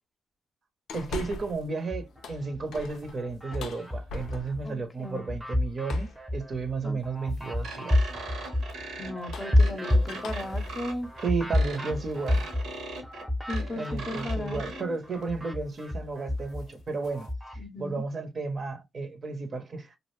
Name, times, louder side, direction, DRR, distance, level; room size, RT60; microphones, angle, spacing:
sound 1, 0.9-1.7 2.1-4.8 5.8-6.3 7.3-7.7 9.0-12.5 12.9-13.0 14.6-14.8 15.1-15.4 15.7-15.9 16.3-17.3, left 4 dB, 85° left, 0.4 m, -43 dB
voice 1, 0.9-8.0 11.2-12.5 13.8-20.0, right 4 dB, 50° right, 0.6 m, -33 dB
sound 2, 1.8-2.6 3.0-4.6 5.0-14.7 15.0-17.6, left 1 dB, 10° right, 0.6 m, -29 dB
voice 2, 4.6-5.3 6.8-7.0 9.0-11.1 13.5-15.0 17.6-18.0, left 1 dB, 30° left, 0.6 m, -36 dB
sound 3, 7.6-14.8, right 3 dB, 85° right, 0.9 m, -40 dB
2.4 x 2.0 x 3.0 m
cardioid pair, 80°, 0 cm